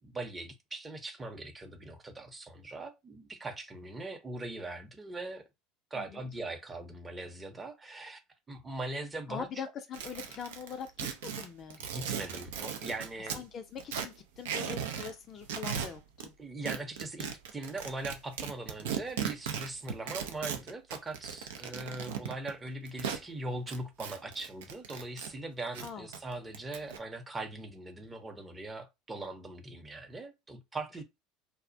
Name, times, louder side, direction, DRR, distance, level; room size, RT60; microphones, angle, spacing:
voice 1, 0.0-5.5 5.9-8.2 8.5-9.5 11.9-13.4 16.4-31.0, right 2 dB, 20° right, 0.7 m, -40 dB
voice 2, 9.3-11.1 11.3-11.8 13.3-16.3 25.8-26.1, left 7 dB, 45° left, 0.4 m, -42 dB
sound 1, 9.9-13.4 13.8-15.1 15.4-16.3 16.7-23.2 23.7-25.3 25.6-27.0, right 8 dB, 75° right, 0.4 m, -37 dB
2.3 x 2.0 x 2.6 m
hypercardioid pair, 75°, 0 cm